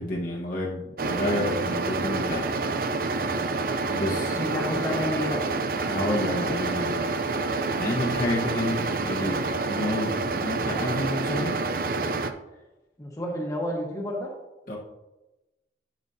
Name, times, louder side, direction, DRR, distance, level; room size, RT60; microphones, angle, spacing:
voice 1, 0.0-2.4 2.8-3.1 3.9-4.4 5.9-7.0 7.2-11.6 14.7-14.8, left 1 dB, 50° left, -3 dB, 1.1 m, -30 dB
sound 1, 1.0-12.3, right 3 dB, 50° right, 0.5 m, -28 dB
voice 2, 4.3-5.4 13.0-14.3, left 1 dB, 20° left, -2 dB, 1.2 m, -30 dB
11.0 x 6.3 x 2.7 m, 1.0 s
head